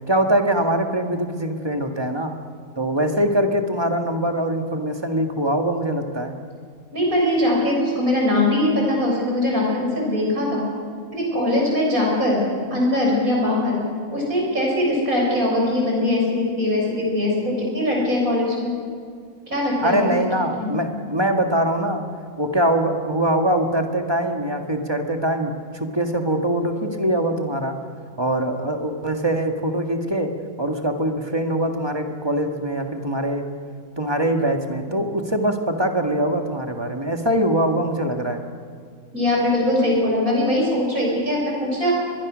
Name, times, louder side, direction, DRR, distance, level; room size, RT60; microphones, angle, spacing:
voice 1, 0.1-2.4 2.8-6.3 19.8-22.1 22.4-27.8 28.2-30.3 30.6-33.5 34.0-38.4, right 1 dB, 20° right, 4 dB, 1.7 m, -23 dB
voice 2, 6.9-10.6 11.1-12.4 12.7-13.8 14.1-18.7 19.5-20.0 20.4-20.7 39.1-41.9, left 1 dB, 75° right, -2 dB, 7.1 m, -21 dB
23.0 x 22.0 x 6.3 m, 2.1 s
omnidirectional pair, 1.5 m